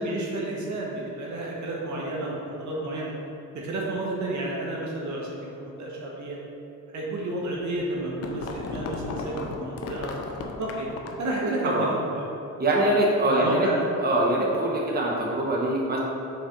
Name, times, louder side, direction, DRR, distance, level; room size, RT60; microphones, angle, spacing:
voice 1, 0.0-3.1 3.5-6.4 6.9-10.1 10.6-10.9 11.2-12.2 13.3-13.8, right 1 dB, 70° right, -3 dB, 1.3 m, -31 dB
sound 1, 7.8-11.3, left 4 dB, 55° left, 0.7 m, -35 dB
voice 2, 11.4-11.9 12.6-13.7 14.0-16.0, right 1 dB, 30° right, -3 dB, 1.1 m, -23 dB
5.1 x 4.2 x 5.2 m, 2.9 s
cardioid pair, 90°, 30 cm